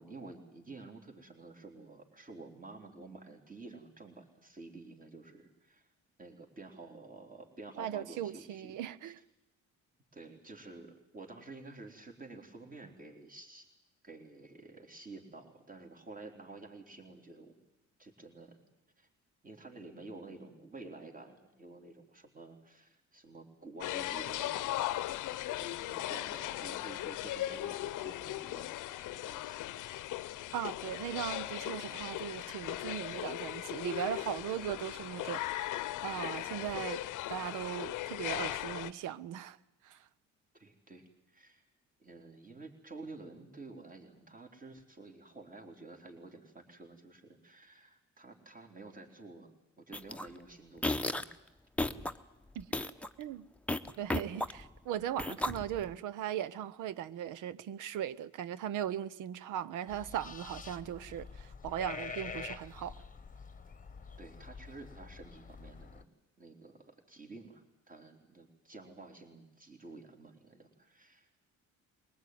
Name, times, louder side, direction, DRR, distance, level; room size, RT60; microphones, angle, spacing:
voice 1, 0.0-5.9 6.2-8.8 9.0-9.1 10.1-13.7 14.0-17.6 18.0-18.6 19.0-19.1 19.4-24.8 25.5-28.7 29.1-29.9 40.5-41.6 42.0-49.5 49.8-51.4 52.0-52.2 64.2-66.1 66.4-71.3, right 3 dB, 25° right, 3.9 m, -51 dB
voice 2, 7.8-9.2 30.5-37.0 37.3-39.6 39.8-40.1 52.5-52.8 53.2-53.5 54.0-62.9, right 10 dB, 90° right, 0.9 m, -38 dB
sound 1, 23.8-38.9, left 15 dB, 85° left, 0.8 m, -38 dB
sound 2, 49.9-50.3 50.8-51.3 51.8-52.1 52.6-53.1 53.7-54.8 55.2-55.9, left 2 dB, 5° left, 0.9 m, -34 dB
sound 3, 59.9-66.0, left 5 dB, 25° left, 1.2 m, -46 dB
22.5 x 19.0 x 9.5 m
cardioid pair, 90°, 30 cm